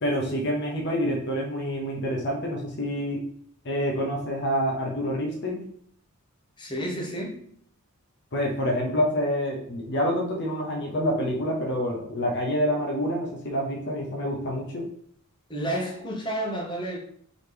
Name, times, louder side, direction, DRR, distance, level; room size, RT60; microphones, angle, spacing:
voice 1, 0.0-3.3 3.6-5.7 8.3-14.9, equal, 50° left, -1 dB, 0.8 m, -27 dB
voice 2, 6.6-7.4 15.5-17.0, right 1 dB, 20° left, -3 dB, 1.0 m, -30 dB
4.0 x 2.9 x 3.4 m, 0.64 s
head